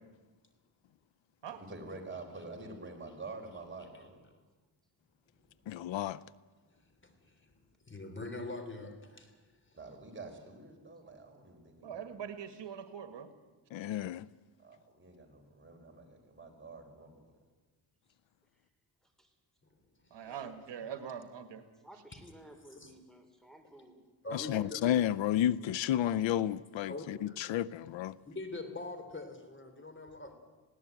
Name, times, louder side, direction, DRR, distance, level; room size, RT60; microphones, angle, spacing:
voice 1, 1.7-4.2 9.7-12.0 14.6-17.3, right 3 dB, 25° right, 5.1 m, -47 dB
voice 2, 5.7-6.2 13.7-14.3 24.3-28.2, left 11 dB, 80° left, 0.7 m, -31 dB
voice 3, 7.0-7.5 7.9-9.8 20.1-20.4 22.8-22.9 24.2-24.8 26.8-27.4 28.2-30.4, left 2 dB, 25° left, 3.1 m, -44 dB
voice 4, 11.8-13.3 20.1-21.6, right 8 dB, 70° right, 1.9 m, -43 dB
voice 5, 19.0-19.4 20.2-20.6 21.7-24.0, right 1 dB, ahead, 4.1 m, -56 dB
20.0 x 17.0 x 9.2 m
cardioid pair, 95°, 44 cm